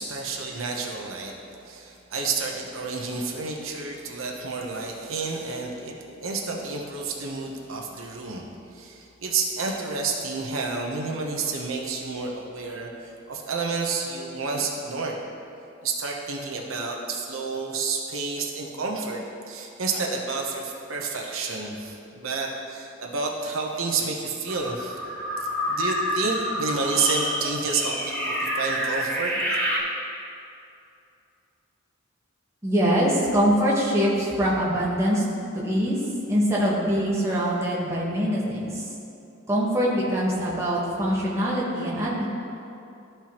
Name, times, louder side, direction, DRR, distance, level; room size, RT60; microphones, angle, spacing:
voice 1, 0.0-1.3 1.6-8.4 8.7-15.2 15.8-25.0 25.4-29.3, right 4 dB, 80° right, 0 dB, 0.9 m, -30 dB
sound 1, 24.5-29.8, equal, 10° left, 0.9 m, -28 dB
voice 2, 32.6-35.2 35.5-36.0 36.3-38.9 39.5-42.3, equal, 15° right, -6 dB, 1.2 m, -23 dB
13.5 x 4.5 x 3.0 m, 2.7 s
head